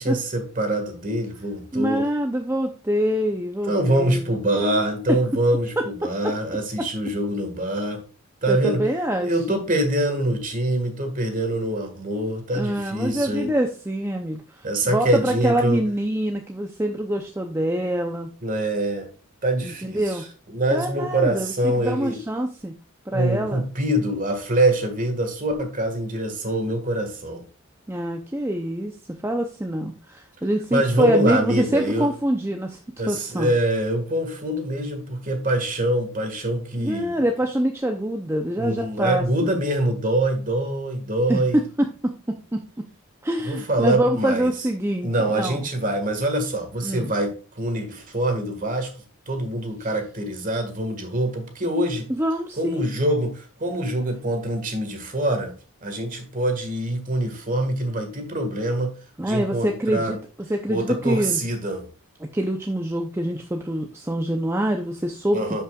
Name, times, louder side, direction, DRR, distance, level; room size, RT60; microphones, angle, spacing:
voice 1, 0.0-2.1 3.7-8.0 8.4-8.8 9.2-13.5 14.6-15.8 18.4-19.1 19.4-20.2 20.5-22.2 23.1-27.4 30.7-32.1 33.0-37.2 38.6-41.6 43.4-44.5 45.0-48.9 49.3-52.1 52.6-55.5 55.8-60.2 60.7-61.8 65.3-65.6, right 1 dB, 35° right, 1.7 m, -24 dB
voice 2, 1.7-4.3 8.5-9.6 12.5-18.3 19.6-20.3 20.7-22.8 23.1-23.6 27.9-32.8 33.1-33.5 36.8-39.6 41.3-42.1 42.5-42.6 43.2-45.6 46.8-47.1 49.8-49.9 52.2-52.8 59.2-60.2 60.5-61.4 62.2-65.4, right 1 dB, 10° right, 0.5 m, -25 dB
11.5 x 5.5 x 2.4 m
head